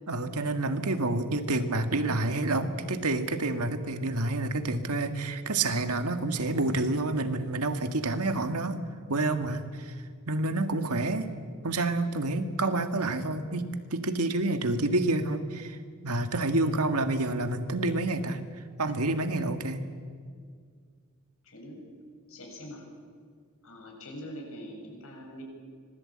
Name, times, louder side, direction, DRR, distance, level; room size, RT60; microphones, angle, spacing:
voice 1, 0.1-8.8 9.1-9.9 10.3-11.3 11.6-15.8 16.0-18.4 18.8-19.8, right 2 dB, 85° right, 8 dB, 1.8 m, -28 dB
voice 2, 16.4-16.8 21.4-21.8 22.3-22.8 23.6-25.4, equal, 65° left, 1 dB, 7.3 m, -44 dB
25.5 x 20.5 x 8.7 m, 2.1 s
head